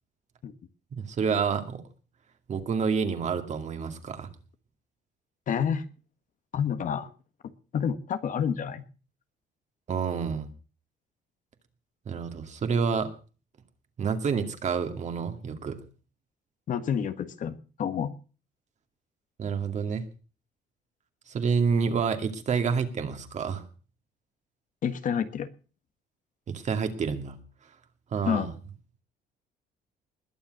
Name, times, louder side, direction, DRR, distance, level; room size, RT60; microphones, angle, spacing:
voice 1, 0.9-1.8 2.5-4.3 9.9-10.5 12.1-13.1 14.0-15.8 19.4-20.0 21.3-23.6 26.5-27.4 28.1-28.5, right 6 dB, 45° right, 7 dB, 2.3 m, -28 dB
voice 2, 5.5-5.8 6.5-7.1 7.7-8.8 16.7-18.1 24.8-25.5 28.2-28.5, left 8 dB, 50° left, 11 dB, 1.4 m, -29 dB
20.5 x 7.2 x 6.6 m, 0.37 s
cardioid pair, 110°, 17 cm